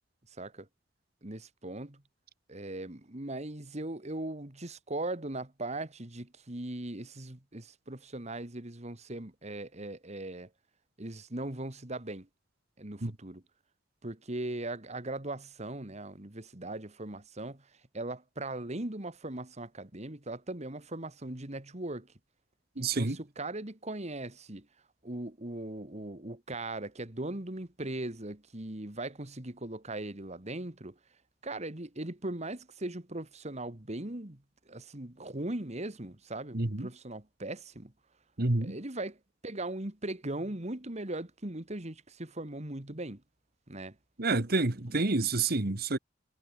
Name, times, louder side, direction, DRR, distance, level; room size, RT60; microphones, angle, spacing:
voice 1, 0.4-0.7 1.2-2.0 2.5-10.5 11.0-12.3 12.8-13.4 14.0-22.1 22.8-24.7 25.0-31.0 31.4-37.9 38.6-43.2 43.7-44.0 44.7-45.1, right 2 dB, 35° right, 2.2 m, -39 dB
voice 2, 22.8-23.2 36.5-36.9 38.4-38.7 44.2-46.0, right 3 dB, 55° right, 1.6 m, -28 dB
head